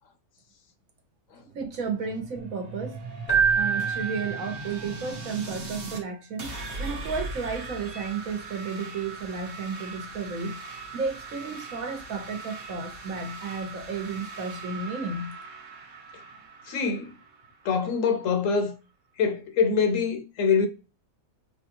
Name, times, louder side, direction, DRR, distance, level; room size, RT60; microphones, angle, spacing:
sound 1, 1.4-6.0 6.4-18.0, right 3 dB, 45° right, 1.0 m, -40 dB
voice 1, 1.5-3.0 3.6-10.6 10.9-15.3, right 5 dB, 70° right, 1.3 m, -33 dB
Keyboard (musical), 3.3-5.1, right 6 dB, 40° left, 0.3 m, -26 dB
voice 2, 16.7-17.1 17.6-18.7 19.2-20.7, left 5 dB, 70° left, 1.0 m, -24 dB
4.7 x 2.3 x 2.9 m
omnidirectional pair, 1.5 m